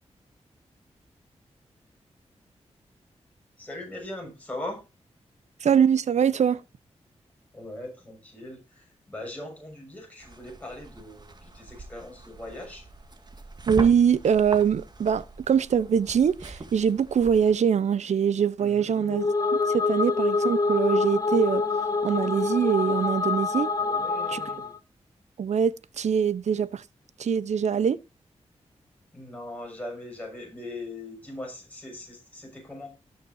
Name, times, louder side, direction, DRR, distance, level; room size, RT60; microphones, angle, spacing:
voice 1, 3.6-4.8 7.5-12.9 18.6-19.2 23.8-24.8 29.1-33.0, left 1 dB, 10° left, 6.3 m, -40 dB
voice 2, 5.6-6.6 13.7-19.3 19.7-21.6 22.0-23.7 24.3-24.4 25.4-26.8 27.2-28.0, right 7 dB, 75° right, 0.7 m, -23 dB
sound 1, 10.2-17.5, right 2 dB, 35° right, 1.9 m, -41 dB
sound 2, 19.0-24.8, left 4 dB, 30° left, 1.4 m, -26 dB
18.5 x 6.7 x 2.7 m
cardioid pair, 70°, 12 cm